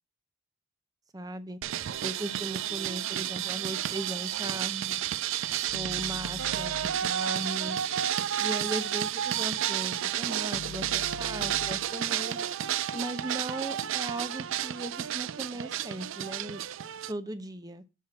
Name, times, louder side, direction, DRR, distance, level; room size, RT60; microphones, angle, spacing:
voice 1, 1.1-1.6 2.0-5.1 5.7-7.8 8.4-12.4 12.9-16.6 17.1-17.8, right 1 dB, 15° right, 11 dB, 0.6 m, -38 dB
sound 1, 1.6-17.1, right 11 dB, 65° right, 0.4 m, -31 dB
sound 2, 5.7-7.3 8.7-8.8 10.5-12.1 12.6-13.1 13.5-14.0, left 7 dB, 85° left, 0.4 m, -44 dB
7.4 x 4.7 x 5.7 m, 0.28 s
head